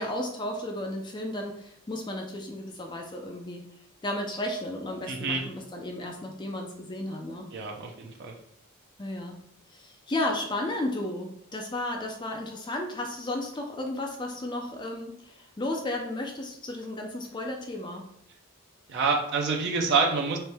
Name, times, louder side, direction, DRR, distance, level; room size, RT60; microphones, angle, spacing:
voice 1, 0.0-3.7 4.0-7.5 9.0-9.4 9.7-18.1, left 1 dB, 20° left, 2 dB, 0.4 m, -33 dB
voice 2, 5.1-5.4 7.5-8.3 18.9-20.4, right 4 dB, 50° right, 1 dB, 0.5 m, -27 dB
4.4 x 3.2 x 3.4 m, 0.73 s
head